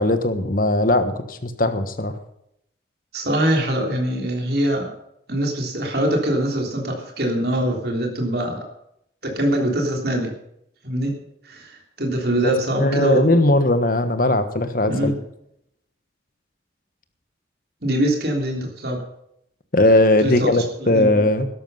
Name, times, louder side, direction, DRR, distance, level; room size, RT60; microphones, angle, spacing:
voice 1, 0.0-2.2 12.4-15.1 19.7-21.5, left 1 dB, 50° left, 10 dB, 1.3 m, -19 dB
voice 2, 3.1-4.9 5.3-8.6 9.2-10.3 10.8-11.1 11.5-13.2 14.9-15.2 17.8-19.0 20.2-20.5 20.8-21.1, right 1 dB, 55° right, 1 dB, 3.4 m, -23 dB
13.0 x 11.5 x 5.5 m, 0.76 s
head